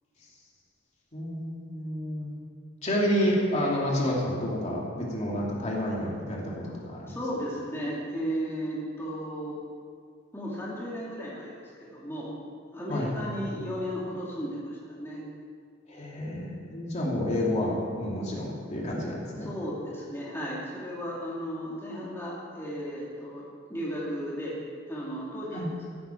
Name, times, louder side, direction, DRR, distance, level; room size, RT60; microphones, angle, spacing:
voice 1, 1.1-2.3 2.8-7.1 12.9-13.3 15.9-19.5 25.5-25.7, equal, 40° left, -3 dB, 2.7 m, -29 dB
voice 2, 7.0-9.6 10.3-12.3 12.7-15.2 19.4-24.6 24.9-25.6, equal, 15° left, -6 dB, 2.4 m, -35 dB
15.0 x 12.0 x 4.5 m, 2.1 s
head